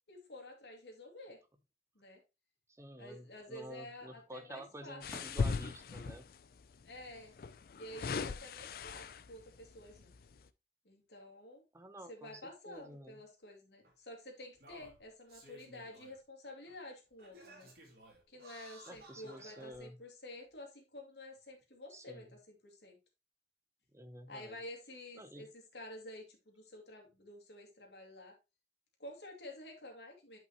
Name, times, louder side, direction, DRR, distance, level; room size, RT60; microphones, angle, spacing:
voice 1, 0.1-1.4 1.9-2.2 3.0-5.0 6.9-7.3 7.8-10.1 10.8-11.6 12.1-17.7 18.3-23.0 24.3-28.3 29.0-30.4, left 1 dB, 70° left, 2.4 m, -50 dB
voice 2, 2.7-6.2 11.7-13.2 18.9-20.0 21.9-22.3 23.9-24.6 25.2-25.5, right 1 dB, 15° right, 0.7 m, -50 dB
sound 1, 3.2-8.9, left 1 dB, 10° left, 2.7 m, -60 dB
sound 2, 5.0-6.4 7.4-9.4 10.0-10.2, left 4 dB, 55° left, 0.4 m, -38 dB
Singing, 12.7-12.8 13.8-13.9 14.5-16.2 16.7-16.8 17.2-19.8 20.5-20.6, right 1 dB, 55° right, 2.7 m, -57 dB
8.8 x 5.4 x 3.0 m
head